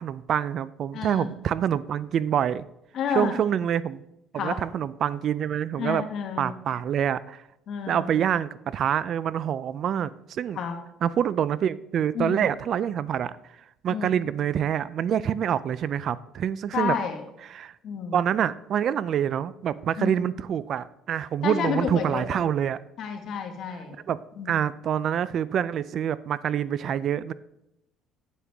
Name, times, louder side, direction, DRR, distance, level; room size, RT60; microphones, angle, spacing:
voice 1, 0.0-2.6 3.1-4.0 4.3-6.0 6.4-7.4 7.9-10.6 11.0-13.4 13.8-17.0 17.5-17.7 18.1-22.8 24.1-24.2 24.5-27.3, right 9 dB, 55° right, 18 dB, 0.4 m, -26 dB
voice 2, 0.9-1.3 2.9-3.3 4.3-4.6 5.7-6.6 7.7-8.1 10.5-10.7 12.1-12.4 13.9-14.1 16.7-17.2 17.8-18.2 20.0-20.2 21.4-22.3 23.0-24.0 24.4-24.6, left 7 dB, 60° left, 4 dB, 1.5 m, -30 dB
8.9 x 8.5 x 3.5 m, 0.84 s
cardioid pair, 115°, 0 cm